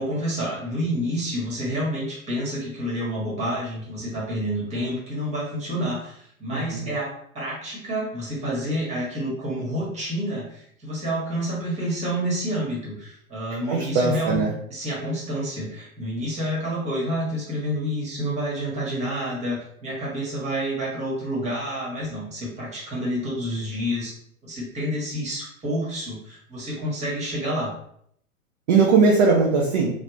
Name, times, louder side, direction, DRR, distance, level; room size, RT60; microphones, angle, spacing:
voice 1, 0.0-7.1 7.3-14.4 14.7-24.1 24.4-27.7, equal, 15° right, -5 dB, 1.4 m, -29 dB
voice 2, 6.5-6.9 13.7-14.5 28.7-29.9, right 4 dB, 30° right, -2 dB, 0.5 m, -19 dB
3.4 x 2.5 x 3.1 m, 0.68 s
hypercardioid pair, 120°, 44 cm